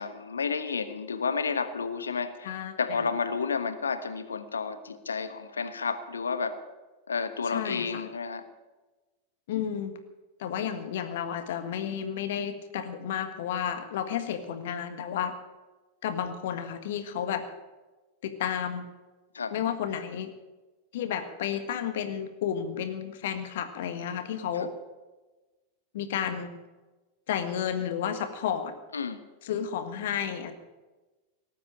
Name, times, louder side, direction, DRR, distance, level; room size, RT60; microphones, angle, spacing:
voice 1, 0.0-2.5 2.8-6.6 7.1-8.5 19.3-19.6 24.5-24.7 28.9-29.2, left 5 dB, 75° left, 11 dB, 1.2 m, -31 dB
voice 2, 2.4-3.1 7.5-8.0 9.5-10.0 10.4-15.3 16.0-17.4 18.2-18.8 19.5-20.3 20.9-24.7 25.9-26.6 27.3-28.7 29.4-30.5, left 8 dB, 55° left, 9 dB, 1.6 m, -32 dB
18.5 x 8.6 x 8.7 m, 1.2 s
figure-of-eight pair, 90°, 0 cm